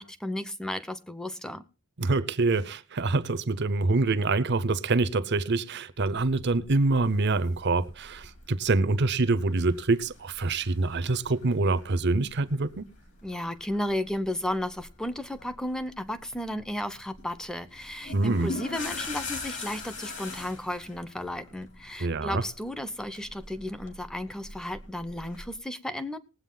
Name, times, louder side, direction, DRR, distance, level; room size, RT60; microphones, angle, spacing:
voice 1, 0.0-1.6 13.2-26.2, left 1 dB, 5° left, 0.7 m, -34 dB
voice 2, 2.0-12.9 18.1-18.5 22.0-22.4, right 3 dB, 55° right, 0.7 m, -25 dB
sound 1, 6.0-25.6, left 3 dB, 60° left, 2.9 m, -44 dB
20.0 x 7.9 x 3.8 m
head